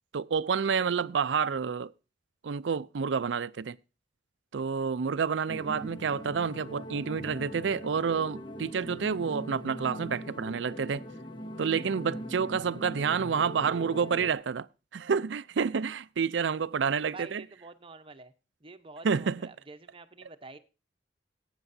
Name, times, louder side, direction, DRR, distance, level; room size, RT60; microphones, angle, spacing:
voice 1, 0.1-1.9 2.4-3.8 4.5-11.0 11.6-14.7 14.9-17.4 19.0-19.5, right 6 dB, 75° right, 0.5 m, -29 dB
sound 1, 5.5-14.3, equal, 25° left, 0.9 m, -41 dB
voice 2, 17.1-18.3 18.6-20.6, right 3 dB, 30° right, 0.9 m, -47 dB
18.0 x 8.8 x 2.7 m
head